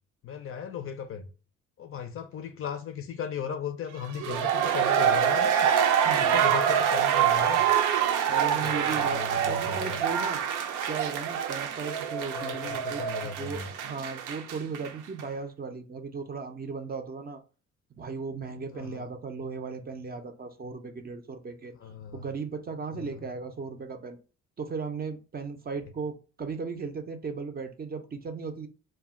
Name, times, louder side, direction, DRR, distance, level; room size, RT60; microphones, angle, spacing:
voice 1, 0.2-1.3 1.8-5.5 6.0-7.7 8.4-10.0 12.3-13.7 18.7-19.1 21.8-22.3 22.9-23.2, left 7 dB, 45° left, 0.4 m, -37 dB
sound 1, 4.0-14.9 15.2-15.3, right 9 dB, 85° right, 0.5 m, -26 dB
voice 2, 6.0-6.5 8.3-9.2 9.5-10.4 10.8-13.0 13.4-17.4 18.0-21.7 22.1-24.2 24.6-28.7, right 5 dB, 30° right, 0.4 m, -36 dB
2.2 x 2.1 x 3.5 m
cardioid pair, 90°, 30 cm